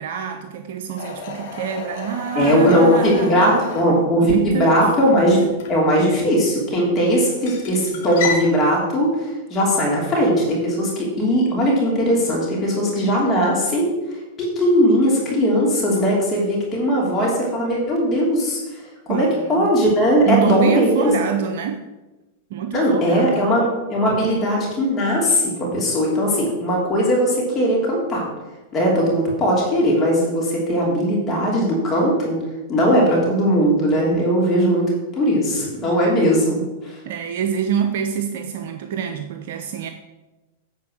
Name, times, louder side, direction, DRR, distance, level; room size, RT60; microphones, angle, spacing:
voice 1, 0.0-3.7 4.2-4.9 13.3-13.6 19.1-19.7 20.2-21.9 22.5-23.6 37.0-39.9, right 8 dB, 65° right, 7 dB, 0.6 m, -26 dB
sound 1, 1.0-8.5, left 4 dB, 60° left, 1.9 m, -33 dB
voice 2, 2.3-5.4 5.7-13.9 14.4-18.6 19.1-21.1 22.7-28.2 28.7-32.4 32.7-37.0, equal, 30° left, -3 dB, 3.0 m, -19 dB
9.3 x 4.4 x 6.4 m, 1.1 s
hypercardioid pair, 105°, 0 cm